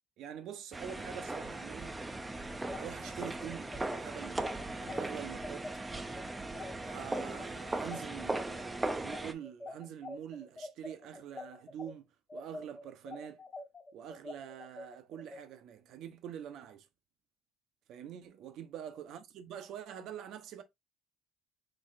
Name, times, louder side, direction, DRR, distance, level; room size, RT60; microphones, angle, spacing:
voice 1, 0.2-2.0 2.8-4.4 4.7-5.7 6.8-13.4 13.9-16.9 17.9-20.6, right 9 dB, 70° right, 0.7 m, -45 dB
sound 1, 0.7-9.3, right 2 dB, 15° right, 0.5 m, -38 dB
sound 2, 2.5-11.9 12.3-15.4, left 2 dB, 40° left, 1.2 m, -45 dB
4.1 x 3.0 x 2.5 m
cardioid pair, 100°, 0 cm